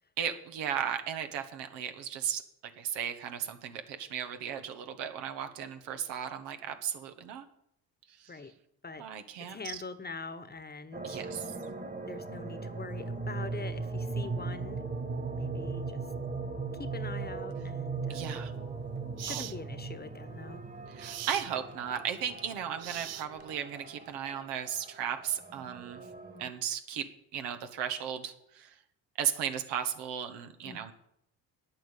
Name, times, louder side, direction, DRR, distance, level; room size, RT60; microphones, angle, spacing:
voice 1, 0.2-2.4 2.8-7.4 8.2-8.3 9.0-9.8 11.0-11.5 18.1-18.5 19.3-19.4 20.9-26.0 26.4-28.7 29.2-30.9, right 9 dB, 85° right, 7 dB, 1.4 m, -36 dB
voice 2, 9.4-11.2 12.1-14.8 15.3-16.0 16.8-18.4 19.2-20.6 30.6-30.9, left 4 dB, 25° left, 13 dB, 1.2 m, -43 dB
sound 1, 10.9-26.5, right 4 dB, 25° right, 1.8 m, -38 dB
sound 2, 18.3-18.4 19.2-19.6 21.0-21.5 22.8-23.6, right 12 dB, 40° right, 0.4 m, -40 dB
9.3 x 9.0 x 8.4 m, 0.74 s
supercardioid pair, 70°, 40 cm